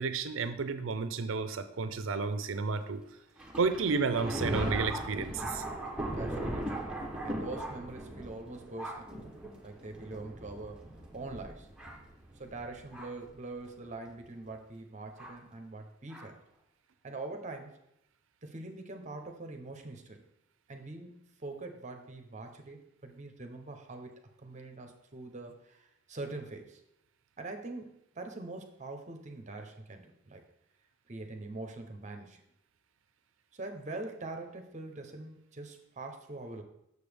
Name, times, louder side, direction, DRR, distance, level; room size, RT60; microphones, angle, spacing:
voice 1, 0.0-3.0 3.6-5.6, right 4 dB, 65° right, 11 dB, 0.5 m, -31 dB
Thunder, 3.4-13.3 14.1-14.2 15.2-15.3 16.1-16.3, right 1 dB, 5° right, 0.8 m, -38 dB
voice 2, 6.0-6.9 7.2-9.1 9.6-11.7 12.4-16.4 17.0-17.7 18.4-20.2 20.7-26.8 27.4-30.4 31.1-32.4 33.5-36.6, right 2 dB, 35° right, 4 dB, 0.7 m, -43 dB
6.8 x 6.6 x 3.4 m, 0.80 s
head